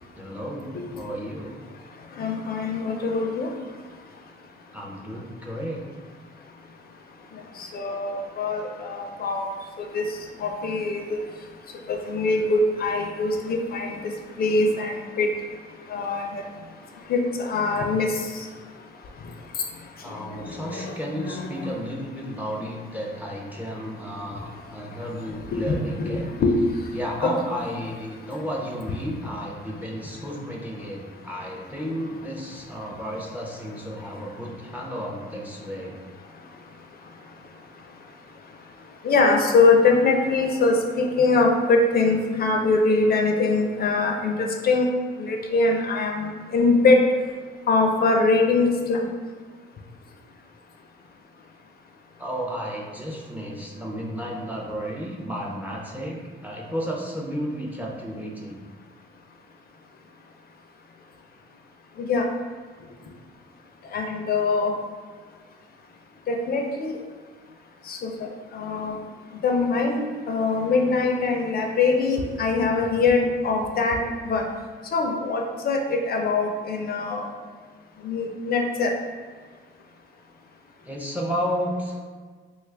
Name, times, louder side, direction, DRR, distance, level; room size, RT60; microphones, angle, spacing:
voice 1, 0.2-1.5 4.7-5.8 20.0-26.3 26.9-36.0 52.2-58.6 80.8-82.0, equal, 10° right, -2 dB, 0.5 m, -32 dB
voice 2, 2.2-3.5 7.6-9.5 9.9-10.0 10.4-11.0 11.9-14.0 14.4-15.3 15.9-16.4 17.1-18.1 20.6-21.7 25.5-26.6 27.2-27.3 39.0-44.9 45.2-47.0 47.7-49.1 62.0-62.3 63.9-64.7 66.3-66.9 67.9-68.1 68.5-69.0 69.4-74.0 74.2-74.4 74.9-77.2 78.0-78.9, left 3 dB, 50° left, 2 dB, 0.4 m, -22 dB
3.1 x 2.3 x 3.2 m, 1.5 s
cardioid pair, 90°, 20 cm